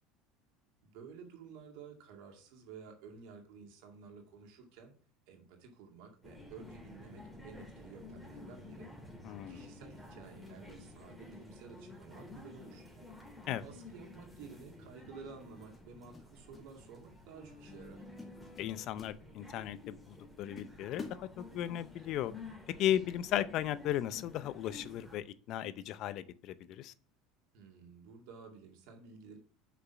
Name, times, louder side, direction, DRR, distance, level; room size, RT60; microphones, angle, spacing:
voice 1, 0.8-4.9 5.3-8.9 9.5-13.1 13.6-18.0 27.5-29.4, right 5 dB, 70° right, 2.2 m, -52 dB
sound 1, 6.2-25.2, left 2 dB, ahead, 2.9 m, -52 dB
voice 2, 9.2-9.7 13.5-13.6 18.6-22.3 22.8-26.9, left 12 dB, 55° left, 0.5 m, -36 dB
sound 2, 15.7-16.7 16.9-17.2 17.7-17.9 18.2-19.7 20.1-20.2 20.6-21.9, left 3 dB, 25° left, 2.0 m, -50 dB
6.1 x 5.9 x 5.7 m
supercardioid pair, 95°, 0 cm